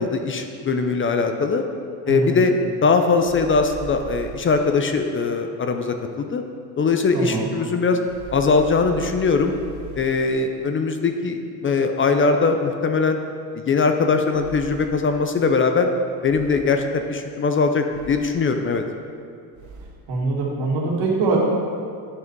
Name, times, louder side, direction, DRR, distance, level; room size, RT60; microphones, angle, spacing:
voice 1, 0.0-1.6 2.1-2.5 2.8-6.4 6.8-8.0 8.3-9.6 9.9-13.2 13.5-15.9 16.2-18.8, left 4 dB, 30° left, 6 dB, 0.6 m, -21 dB
voice 2, 2.1-2.4 7.1-7.5 20.1-21.4, right 3 dB, 75° right, -3 dB, 2.2 m, -23 dB
sound 1, 3.2-4.7 8.0-10.4 14.3-15.2 16.2-16.9 17.9-18.5 19.5-20.1, right 6 dB, 45° right, 0.9 m, -40 dB
9.7 x 5.6 x 4.6 m, 2.3 s
cardioid pair, 115°, 41 cm